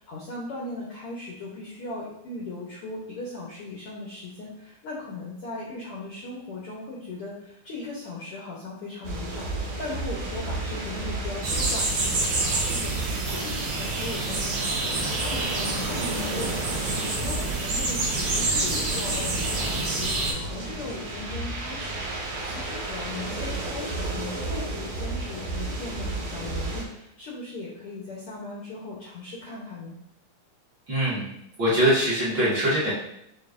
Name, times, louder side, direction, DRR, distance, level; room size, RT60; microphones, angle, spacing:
voice 1, 0.0-16.8 17.1-30.0, left 2 dB, 80° left, -4 dB, 1.3 m, -38 dB
sound 1, 9.0-26.8, right 2 dB, 90° right, 2.5 m, -33 dB
sound 2, 11.4-20.3, right 3 dB, 70° right, 1.4 m, -28 dB
sound 3, 15.5-20.5, equal, 60° left, 1.1 m, -38 dB
voice 2, 30.9-31.3 31.6-32.9, equal, 50° right, -11 dB, 1.7 m, -22 dB
6.3 x 2.7 x 2.5 m, 0.77 s
omnidirectional pair, 3.5 m